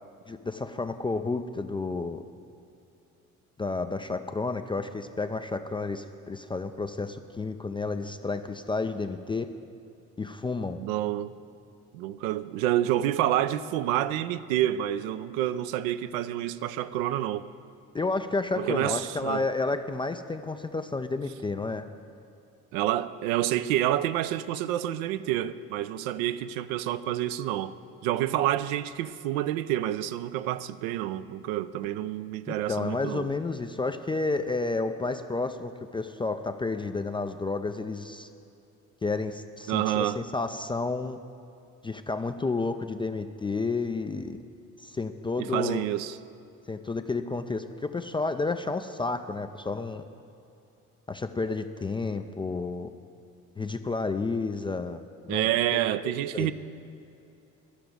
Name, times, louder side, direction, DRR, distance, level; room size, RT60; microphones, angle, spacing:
voice 1, 0.3-2.2 3.6-9.5 10.2-10.8 17.9-21.9 32.7-38.3 39.0-41.2 41.8-44.4 44.8-45.8 46.7-50.0 51.1-52.9 53.6-55.0 55.3-56.5, left 3 dB, 10° left, 0.4 m, -31 dB
voice 2, 10.8-11.3 11.9-17.5 18.6-19.5 22.7-27.7 28.0-33.3 39.7-40.2 45.4-46.2 55.3-56.5, right 13 dB, 65° right, 0.6 m, -28 dB
11.5 x 6.6 x 9.1 m
figure-of-eight pair, 50°, 44 cm